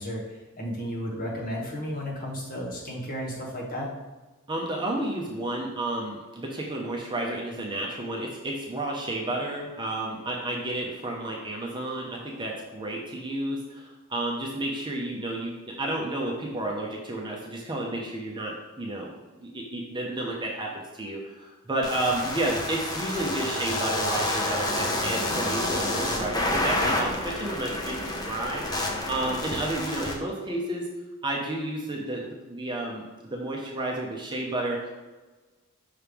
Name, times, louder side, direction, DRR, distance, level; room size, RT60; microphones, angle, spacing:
voice 1, 0.0-3.9, equal, 40° left, -3 dB, 1.4 m, -33 dB
voice 2, 4.5-30.9 31.2-34.9, right 1 dB, 20° right, -1 dB, 0.7 m, -31 dB
sound 1, 21.8-30.1, left 1 dB, 15° left, 0.7 m, -29 dB
5.7 x 3.2 x 5.2 m, 1.2 s
head